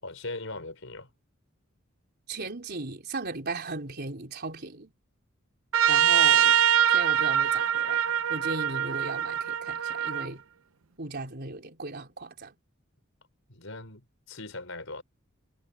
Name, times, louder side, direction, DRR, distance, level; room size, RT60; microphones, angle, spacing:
voice 1, 0.0-1.1 13.5-15.0, left 2 dB, 70° left, 5.8 m, -39 dB
voice 2, 2.3-4.9 5.9-6.6 6.9-8.0 8.3-10.4 11.0-12.6, right 3 dB, 50° right, 4.1 m, -36 dB
Trumpet, 5.7-10.3, right 9 dB, 75° right, 0.7 m, -23 dB
head